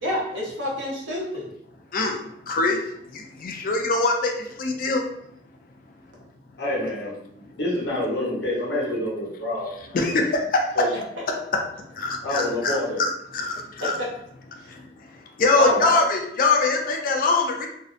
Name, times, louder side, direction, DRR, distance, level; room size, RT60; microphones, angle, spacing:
voice 1, 0.0-1.4 13.8-14.1 15.5-15.9, left 1 dB, 85° right, -4 dB, 0.9 m, -28 dB
voice 2, 2.5-2.8 3.1-4.3 4.6-5.0 9.9-10.4 12.0-14.0 15.4-17.7, left 3 dB, 50° left, 2 dB, 0.4 m, -23 dB
voice 3, 6.6-7.1 7.5-10.2 10.8-10.9 12.2-13.0 15.6-15.8, left 1 dB, 65° left, -6 dB, 0.9 m, -27 dB
2.6 x 2.0 x 2.5 m, 0.73 s
head